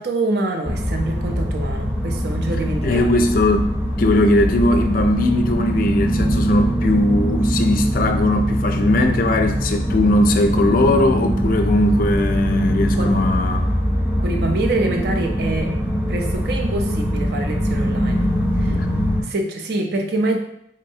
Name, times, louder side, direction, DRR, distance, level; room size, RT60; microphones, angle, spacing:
voice 1, 0.0-3.1 13.0-13.1 14.2-15.7 16.1-18.3 18.6-18.7 19.2-20.4, right 2 dB, 55° right, 4 dB, 0.5 m, -25 dB
sound 1, 0.6-19.2, equal, 10° right, 0.6 m, -22 dB
voice 2, 2.8-3.7 4.0-13.6 18.7-18.9, left 2 dB, 50° left, 6 dB, 0.4 m, -19 dB
3.8 x 3.1 x 2.7 m, 0.74 s
head